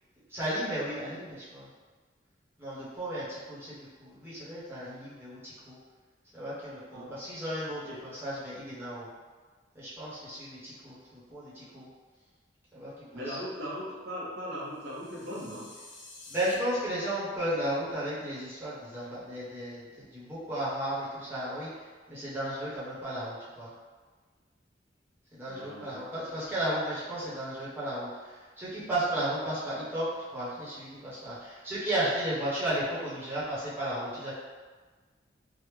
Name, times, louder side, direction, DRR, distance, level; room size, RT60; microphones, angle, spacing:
voice 1, 0.3-1.7 2.6-5.8 6.3-9.1 9.7-11.9 12.7-13.4 16.3-23.7 25.3-34.3, right 1 dB, 15° right, -10 dB, 0.9 m, -34 dB
voice 2, 13.1-15.7 25.5-26.0, equal, 60° right, -6 dB, 0.7 m, -38 dB
sound 1, 14.7-16.5, left 2 dB, 40° left, 0.7 m, -50 dB
3.4 x 2.0 x 3.1 m, 1.4 s
head